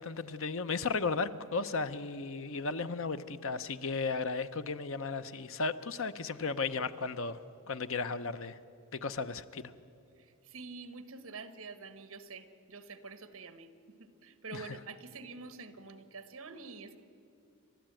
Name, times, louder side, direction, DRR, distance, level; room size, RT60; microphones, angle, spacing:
voice 1, 0.0-7.4 7.7-8.6 9.0-9.7 14.5-14.8, left 4 dB, 65° left, 12 dB, 0.8 m, -35 dB
voice 2, 10.5-13.7 14.0-17.0, right 4 dB, 65° right, 11 dB, 1.4 m, -47 dB
29.5 x 13.0 x 9.0 m, 2.5 s
head